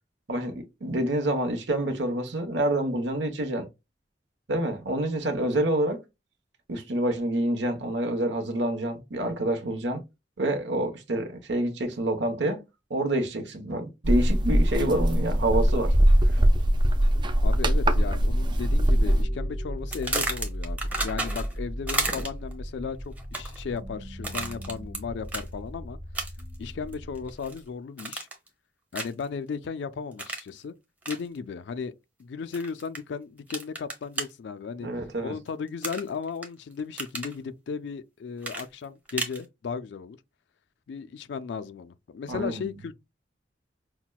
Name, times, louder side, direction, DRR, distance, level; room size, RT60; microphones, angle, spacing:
voice 1, 0.3-3.7 4.5-6.0 6.7-10.0 10.4-12.6 12.9-16.0 16.3-16.4 34.8-35.3 42.3-42.7, right 1 dB, 80° right, 1.0 m, -27 dB
sound 1, 14.0-19.2, equal, 25° right, 0.4 m, -21 dB
sound 2, 17.1-27.7, equal, 45° right, 1.3 m, -36 dB
voice 2, 17.4-26.0 26.6-28.3 28.9-30.7 31.1-31.9 32.2-34.9 35.2-40.2 40.9-42.9, left 5 dB, 75° left, 0.4 m, -35 dB
sound 3, 19.9-21.6 21.9-22.5 23.2-23.6 24.2-25.0 25.3-25.5 26.1-26.5 26.9-27.6 28.0-28.5 28.9-29.2 30.2-30.5 31.0-31.2 32.5-33.0 33.5-34.3 35.8-36.5 36.8-37.3 38.4-39.4, right 2 dB, 10° right, 0.8 m, -32 dB
5.8 x 2.2 x 2.2 m
head